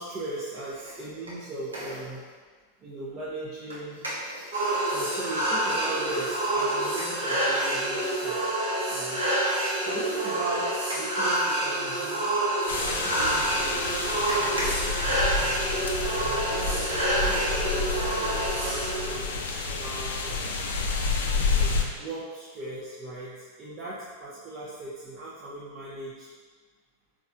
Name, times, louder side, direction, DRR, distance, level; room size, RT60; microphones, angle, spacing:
voice 1, 0.0-2.2 2.8-4.0 4.9-8.6 8.9-9.2 9.8-12.3 12.7-15.6 16.2-20.6 21.5-26.3, right 2 dB, 30° right, -8 dB, 0.5 m, -38 dB
sound 1, 0.5-2.3 3.7-5.4 6.6-9.1 9.5-15.8 16.1-16.2, equal, 75° right, 0.7 m, -41 dB
sound 2, 4.5-19.2, right 1 dB, 60° right, 1.1 m, -27 dB
sound 3, 12.7-21.8, left 4 dB, 60° left, 0.3 m, -29 dB
4.1 x 2.3 x 2.6 m, 1.5 s
figure-of-eight pair, 90°, 0 cm